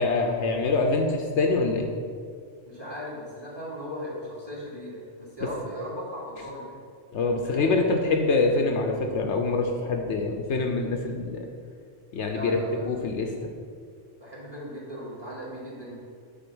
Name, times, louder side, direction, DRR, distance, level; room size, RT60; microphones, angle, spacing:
voice 1, 0.0-1.9 7.1-11.4 12.1-12.6 12.8-13.5, left 3 dB, 70° left, 3 dB, 1.0 m, -25 dB
voice 2, 2.7-6.8 7.4-7.8 12.3-12.9 14.2-16.0, equal, 20° right, -6 dB, 2.4 m, -37 dB
8.9 x 4.2 x 6.1 m, 2.1 s
omnidirectional pair, 1.3 m